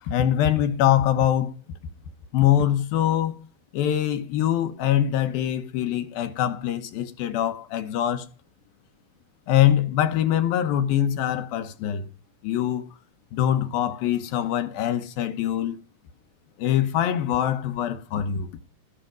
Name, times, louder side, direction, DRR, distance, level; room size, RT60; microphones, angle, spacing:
voice 1, 0.0-1.5 2.3-3.4 3.7-8.3 9.5-12.1 12.4-12.9 13.3-15.8 16.6-18.5, left 11 dB, 80° left, 2.8 m, -23 dB
18.5 x 6.4 x 5.3 m
omnidirectional pair, 4.2 m